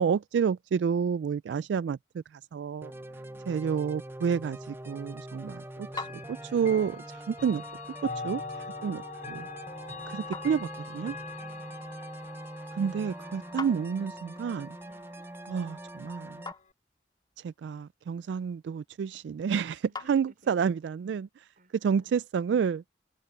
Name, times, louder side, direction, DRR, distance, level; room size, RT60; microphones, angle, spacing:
voice 1, 0.0-2.9 3.5-7.6 8.0-9.5 10.1-11.2 12.7-14.8 15.5-16.4 17.4-21.5 21.8-22.8, right 7 dB, 80° right, 0.3 m, -30 dB
sound 1, 2.8-16.5, right 1 dB, 15° right, 0.6 m, -43 dB
voice 2, 2.9-3.6 11.4-11.9 14.8-15.2 19.9-20.7 21.6-22.2, right 1 dB, 50° right, 5.5 m, -59 dB
Chime / Clock, 5.9-16.7, left 4 dB, 45° left, 4.9 m, -44 dB
sound 2, 15.9-20.8, left 4 dB, 25° left, 3.2 m, -49 dB
head